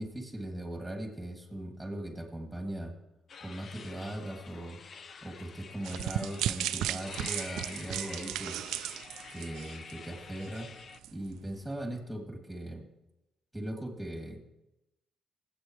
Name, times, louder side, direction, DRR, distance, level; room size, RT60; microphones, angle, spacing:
voice 1, 0.0-2.9 3.4-4.8 5.2-8.6 9.3-10.7 11.1-12.8 13.5-14.5, right 1 dB, 5° right, 2 dB, 2.9 m, -39 dB
sound 1, 3.3-11.0, left 5 dB, 50° left, 0.6 m, -47 dB
sound 2, 5.8-10.1 10.4-10.6 11.0-11.1, right 12 dB, 90° right, 0.4 m, -35 dB
21.5 x 8.7 x 3.3 m, 0.92 s
cardioid pair, 90°, 0 cm